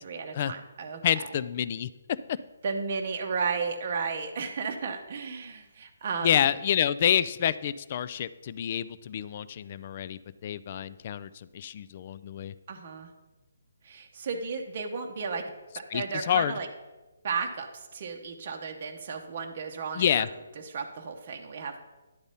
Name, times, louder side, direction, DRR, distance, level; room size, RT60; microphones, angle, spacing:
voice 1, 0.0-1.3 2.6-6.3 12.7-13.1 13.8-16.7 17.2-20.3 20.6-21.8, right 5 dB, 40° right, 3 dB, 0.7 m, -34 dB
voice 2, 1.0-1.9 2.3-2.4 6.2-12.5 15.9-16.6 19.9-20.3, left 9 dB, 35° left, 15 dB, 0.3 m, -28 dB
10.5 x 4.0 x 5.4 m, 1.1 s
figure-of-eight pair, 140°, 0 cm